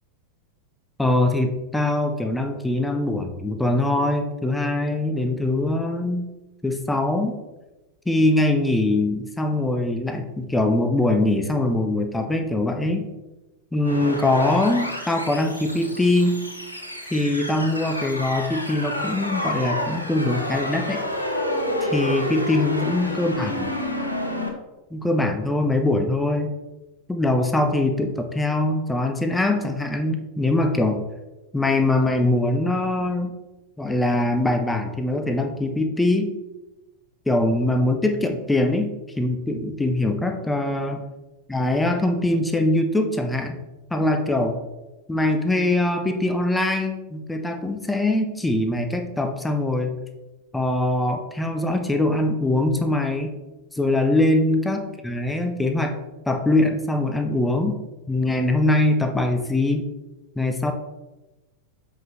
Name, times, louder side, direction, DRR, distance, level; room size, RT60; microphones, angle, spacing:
voice 1, 1.0-6.3 6.6-7.4 8.1-13.1 13.7-16.4 17.1-21.0 21.8-23.7 24.9-26.5 27.1-31.0 31.5-33.3 33.8-36.3 37.3-38.9 39.2-41.0 41.5-43.6 43.9-44.6 45.1-49.9 50.5-53.3 53.7-55.9 56.3-57.8 58.1-59.8 60.4-60.7, left 2 dB, 5° left, 5 dB, 0.7 m, -22 dB
sound 1, 13.8-24.5, left 1 dB, 90° left, 1.0 m, -29 dB
7.5 x 5.4 x 3.1 m, 1.1 s
figure-of-eight pair, 90°, 0 cm